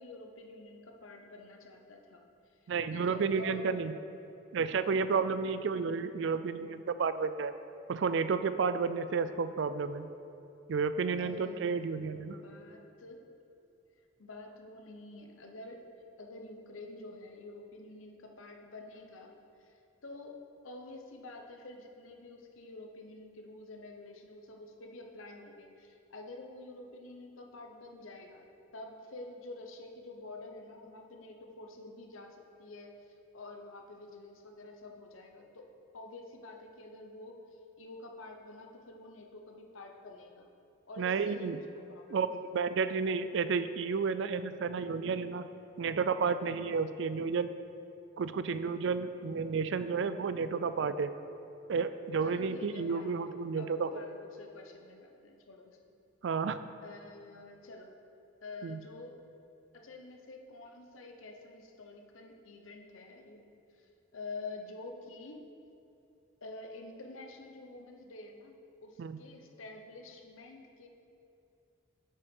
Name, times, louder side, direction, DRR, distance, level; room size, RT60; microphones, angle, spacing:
voice 1, 0.0-2.2 2.9-3.8 11.2-11.9 12.3-13.2 14.2-19.3 19.6-20.4 20.6-28.4 28.7-32.9 33.3-35.6 35.9-40.5 40.9-41.6 41.9-42.2 52.2-55.8 56.8-57.9 58.4-59.2 59.7-63.5 63.8-63.9 64.1-65.5 66.4-70.9, left 2 dB, 85° left, 3 dB, 0.9 m, -48 dB
voice 2, 2.7-3.9 4.5-7.5 7.9-10.1 10.7-12.4 41.0-41.6 42.1-42.3 42.5-45.5 45.8-47.5 48.2-51.1 51.7-53.9 56.2-56.6 58.6-58.8 69.0-69.2, right 5 dB, 65° right, 12 dB, 0.4 m, -31 dB
8.3 x 5.7 x 5.4 m, 2.7 s
head